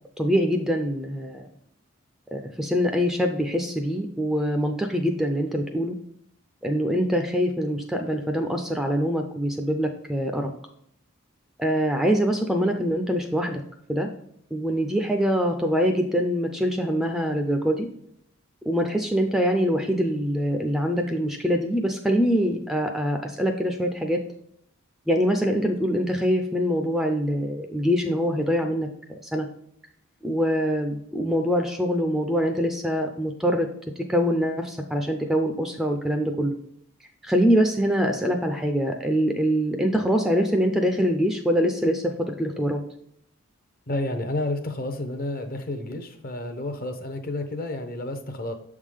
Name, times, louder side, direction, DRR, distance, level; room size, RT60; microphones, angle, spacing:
voice 1, 0.2-1.4 2.3-6.0 6.6-10.5 11.6-13.6 13.9-14.1 14.5-17.9 18.7-24.2 25.1-29.5 30.2-33.7 34.1-36.5 37.2-42.8, equal, ahead, 4 dB, 0.4 m, -24 dB
voice 2, 43.9-48.5, left 1 dB, 45° left, 8 dB, 0.7 m, -30 dB
6.9 x 3.7 x 4.9 m, 0.70 s
head